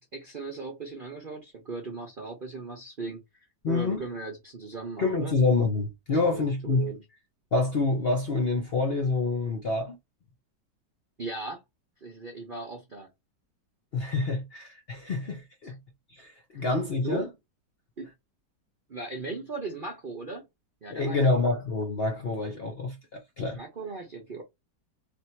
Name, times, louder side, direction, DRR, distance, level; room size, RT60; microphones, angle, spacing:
voice 1, 0.0-5.3 6.1-7.0 11.2-11.6 12.0-13.1 15.6-15.7 16.5-16.7 17.0-17.3 18.0-18.1 18.9-20.5 20.8-21.5 23.5-24.4, right 3 dB, 45° right, 0.7 m, -38 dB
voice 2, 3.6-4.0 5.0-6.9 7.5-10.0 13.9-15.8 16.2-17.3 20.9-23.6, left 3 dB, 50° left, 0.8 m, -27 dB
3.5 x 2.7 x 4.4 m
omnidirectional pair, 1.9 m